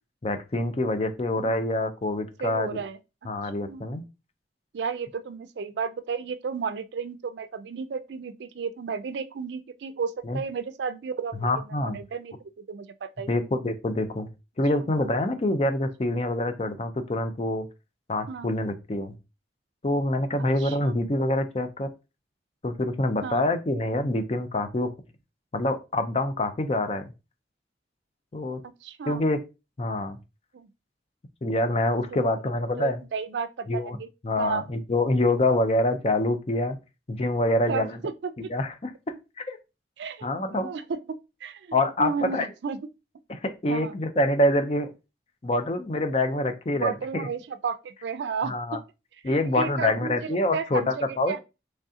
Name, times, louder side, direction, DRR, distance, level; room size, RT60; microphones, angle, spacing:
voice 1, 0.2-2.8 3.3-4.0 10.3-10.4 11.4-12.0 13.3-14.3 14.6-17.7 18.1-19.1 19.8-21.9 22.6-24.9 25.5-27.1 28.3-28.6 29.1-29.4 29.8-30.2 31.4-33.0 33.7-34.0 34.2-36.8 37.1-38.0 38.5-38.9 39.4-39.6 40.2-40.7 41.7-42.5 43.3-44.9 45.4-47.3 48.5-48.8 49.2-51.4, left 1 dB, 35° left, 0.5 m, -26 dB
voice 2, 2.4-3.0 3.7-4.0 4.7-13.5 14.8-14.9 18.3-18.5 20.4-20.9 23.2-23.5 28.8-29.2 30.5-30.7 32.8-34.1 34.4-34.7 37.7-38.5 40.0-41.0 41.4-42.8 43.7-43.9 46.7-48.8 49.3-51.4, right 5 dB, 80° right, 0.4 m, -33 dB
3.6 x 3.3 x 2.7 m
head